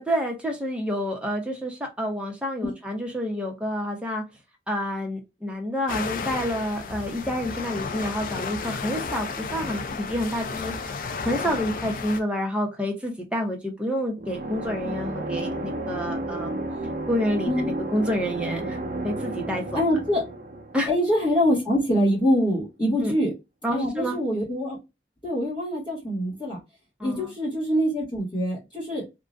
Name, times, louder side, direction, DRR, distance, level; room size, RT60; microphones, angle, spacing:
voice 1, 0.0-4.2 4.7-10.9 11.2-16.6 17.1-18.8 19.0-19.8 20.7-20.9 23.0-23.1 23.6-24.2 27.0-27.3, equal, 5° right, 0.6 m, -28 dB
sound 1, 5.9-12.2, left 4 dB, 50° left, 0.4 m, -32 dB
sound 2, 14.2-21.8, right 1 dB, 50° right, 0.5 m, -32 dB
voice 2, 19.7-20.2 20.9-23.3 23.7-24.8 25.2-26.6 27.0-29.0, equal, 25° left, 1.2 m, -24 dB
2.4 x 2.1 x 2.4 m
head